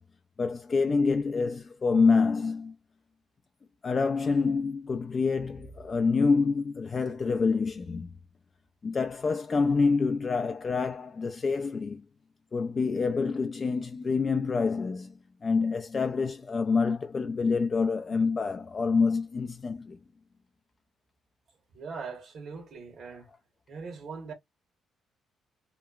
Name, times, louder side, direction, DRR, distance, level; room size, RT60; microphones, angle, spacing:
voice 1, 0.4-2.7 3.8-8.1 8.8-12.0 12.5-15.1 15.4-20.0, left 4 dB, 35° left, 0.4 m, -27 dB
voice 2, 21.7-23.3 23.7-24.3, right 5 dB, 65° right, 1.2 m, -41 dB
2.9 x 2.2 x 2.4 m
cardioid pair, 90°, 0 cm